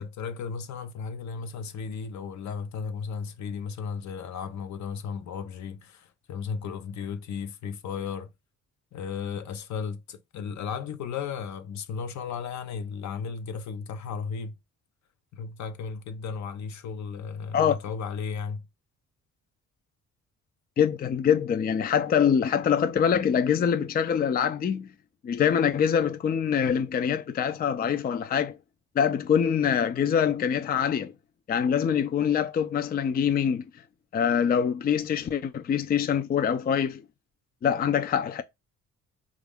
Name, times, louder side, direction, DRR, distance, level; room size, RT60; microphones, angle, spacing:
voice 1, 0.0-8.3 8.9-14.5 15.3-18.6, left 6 dB, 65° left, 0.7 m, -35 dB
voice 2, 20.8-24.9 25.2-28.6 29.0-31.1 31.5-33.6 34.1-37.0 37.6-38.4, left 8 dB, 30° left, 0.4 m, -24 dB
4.1 x 2.5 x 3.5 m
cardioid pair, 90°, 30 cm